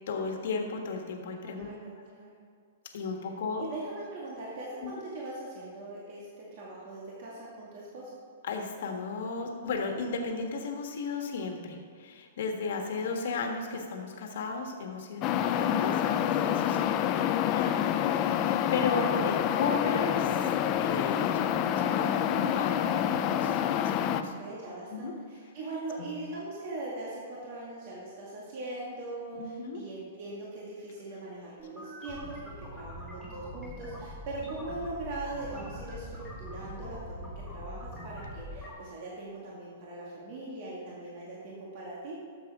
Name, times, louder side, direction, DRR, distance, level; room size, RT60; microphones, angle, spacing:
voice 1, 0.1-1.7 2.9-3.6 4.8-4.9 8.4-20.5 20.8-24.3 24.9-25.1 26.0-26.1 29.3-29.8, left 4 dB, 65° left, 3 dB, 1.4 m, -35 dB
voice 2, 1.4-2.3 3.6-8.1 12.9-13.1 15.4-16.2 24.2-42.1, right 2 dB, 45° right, -5 dB, 1.9 m, -41 dB
sound 1, 15.2-24.2, left 10 dB, 30° left, 0.4 m, -27 dB
sound 2, 31.6-38.7, equal, 5° right, 2.4 m, -43 dB
12.0 x 7.3 x 3.6 m, 2.2 s
hypercardioid pair, 155°, 0 cm